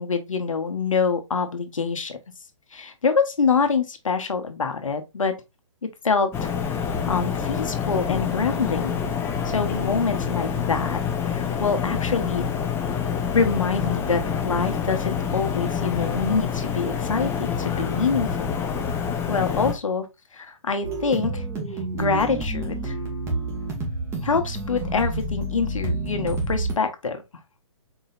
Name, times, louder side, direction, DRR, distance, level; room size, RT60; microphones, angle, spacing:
voice 1, 0.0-2.2 2.7-5.4 5.8-9.0 9.4-12.5 13.3-18.5 19.3-20.1 20.3-21.4 21.9-22.9 24.2-27.2, left 5 dB, 80° left, 1.0 m, -25 dB
sound 1, 6.3-19.7, left 7 dB, 15° left, 0.7 m, -27 dB
sound 2, 20.8-26.7, right 2 dB, 15° right, 1.5 m, -29 dB
4.5 x 3.9 x 2.5 m
hypercardioid pair, 135°, 16 cm